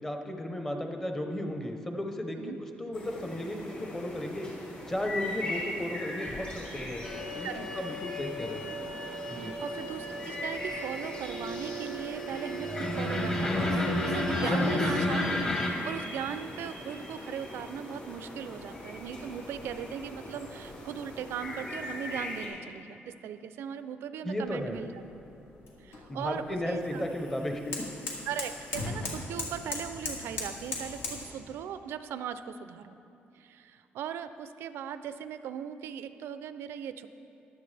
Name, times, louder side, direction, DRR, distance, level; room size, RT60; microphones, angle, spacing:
voice 1, 0.0-4.5 4.9-7.5 7.7-8.7 9.3-9.5 14.5-14.9 24.2-24.8 26.1-27.9, left 1 dB, 10° left, 3 dB, 0.8 m, -34 dB
sound 1, 2.9-22.5, left 1 dB, 40° left, 3.0 m, -41 dB
sound 2, 7.0-15.7, left 1 dB, 25° left, 1.3 m, -32 dB
voice 2, 9.3-24.9 25.8-27.0 28.3-33.0 33.3-37.1, right 8 dB, 85° right, 11 dB, 0.4 m, -39 dB
sound 3, 24.5-31.2, left 2 dB, 75° left, 2.0 m, -39 dB
14.5 x 11.0 x 3.3 m, 2.8 s
cardioid pair, 175°, 4 cm